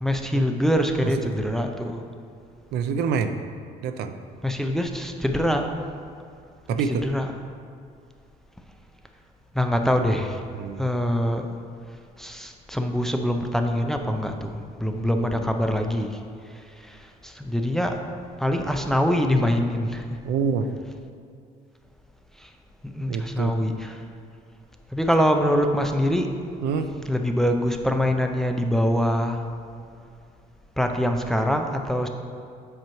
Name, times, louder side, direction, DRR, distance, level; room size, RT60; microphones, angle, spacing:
voice 1, 0.0-2.0 4.4-5.7 6.9-7.3 9.5-10.4 10.8-11.6 12.2-18.0 18.4-20.2 22.4-22.5 22.8-23.9 24.9-26.3 27.1-29.5 30.8-32.1, equal, ahead, 4 dB, 0.5 m, -24 dB
voice 2, 1.0-1.4 2.7-3.4 3.8-4.1 6.7-7.0 10.5-10.9 15.2-15.5 20.2-20.7 23.1-23.6 26.6-26.9, right 6 dB, 75° right, 8 dB, 0.5 m, -27 dB
7.6 x 3.0 x 5.6 m, 2.4 s
cardioid pair, 110°, 17 cm